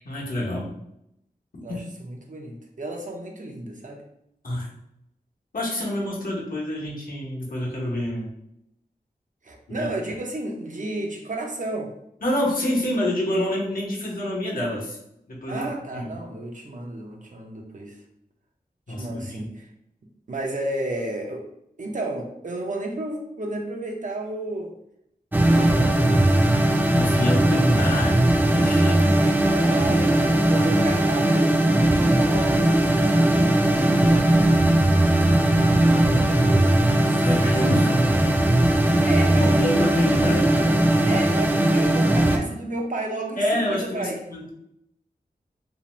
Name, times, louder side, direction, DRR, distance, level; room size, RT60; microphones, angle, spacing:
voice 1, 0.0-0.7 1.7-1.8 4.4-4.7 5.5-8.3 9.7-9.9 12.2-15.0 15.3-16.1 18.9-19.5 26.6-28.2 28.5-29.1 34.5-34.7 37.2-38.1 39.3-41.0 43.4-44.5, left 1 dB, 65° left, -3 dB, 0.9 m, -27 dB
voice 2, 1.6-4.0 9.4-11.9 15.5-18.0 18.9-19.7 20.3-21.4 21.8-24.7 25.3-26.9 29.1-33.6 36.0-37.6 38.8-40.2 41.0-44.2, right 2 dB, 55° right, 1 dB, 0.6 m, -33 dB
sound 1, 25.3-42.4, right 1 dB, 10° right, 0.4 m, -19 dB
2.7 x 2.1 x 3.1 m, 0.79 s
wide cardioid pair, 50°, 16 cm